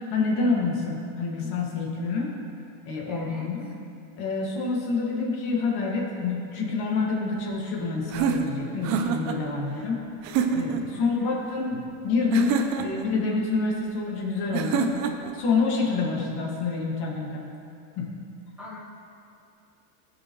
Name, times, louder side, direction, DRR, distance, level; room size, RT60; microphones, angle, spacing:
voice 1, 0.1-2.3 2.9-3.7 4.2-10.0 10.5-14.9 15.3-17.5 18.0-18.2, left 4 dB, 50° left, -2 dB, 2.0 m, -27 dB
voice 2, 3.0-3.5 10.9-11.4 18.6-18.8, left 1 dB, 5° right, -7 dB, 1.0 m, -43 dB
sound 1, 8.1-9.4 10.2-10.8 12.3-13.1 14.5-15.3, right 6 dB, 35° right, 0.6 m, -26 dB
16.5 x 5.6 x 3.1 m, 2.6 s
supercardioid pair, 135°, 49 cm